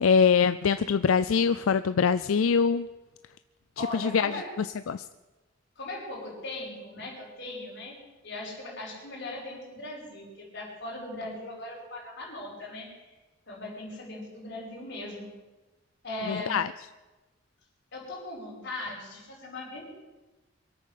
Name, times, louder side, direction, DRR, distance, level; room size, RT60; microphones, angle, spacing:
voice 1, 0.0-2.9 3.9-4.3 4.9-5.0 16.3-16.7, left 6 dB, 90° left, 13 dB, 0.4 m, -23 dB
voice 2, 3.8-4.5 5.8-13.1 13.5-15.3 16.0-16.6 17.9-20.0, left 2 dB, 60° left, -2 dB, 5.7 m, -39 dB
23.5 x 8.5 x 6.7 m, 1.1 s
head